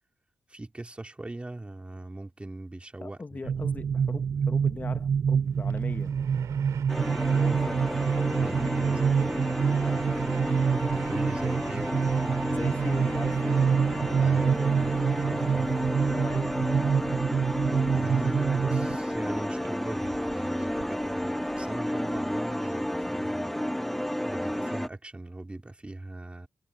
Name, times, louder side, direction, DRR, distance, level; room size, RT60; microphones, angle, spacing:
voice 1, 0.5-3.8 8.4-9.3 10.9-12.7 14.1-14.5 14.7-14.9 15.2-15.7 17.8-23.7 24.2-26.5, right 2 dB, 20° right, 3.3 m, -40 dB
voice 2, 3.0-6.1 7.3-9.2 9.8-10.1 12.5-13.7 14.1-14.7 16.0-17.2, left 3 dB, 30° left, 1.1 m, -40 dB
sound 1, 3.4-19.0, right 7 dB, 60° right, 0.6 m, -27 dB
Train, 5.5-23.1, right 9 dB, 85° right, 3.5 m, -47 dB
sound 2, 6.9-24.9, equal, 5° left, 0.4 m, -31 dB
cardioid pair, 60°, 5 cm